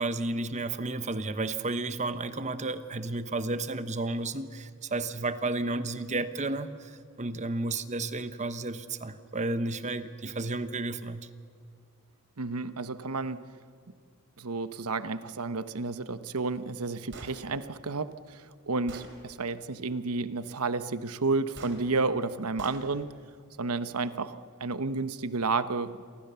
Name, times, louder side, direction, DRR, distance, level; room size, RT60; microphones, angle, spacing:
voice 1, 0.0-11.3, right 2 dB, 30° right, 1.1 m, -32 dB
voice 2, 12.4-13.5 14.4-23.1 23.6-26.0, right 3 dB, 90° right, 1.1 m, -31 dB
Gunshot gunfire, 17.1-17.4 18.3-18.4 18.9-19.1 21.5-21.8 22.6-22.8, right 3 dB, 55° right, 3.7 m, -44 dB
29.5 x 24.0 x 7.0 m
head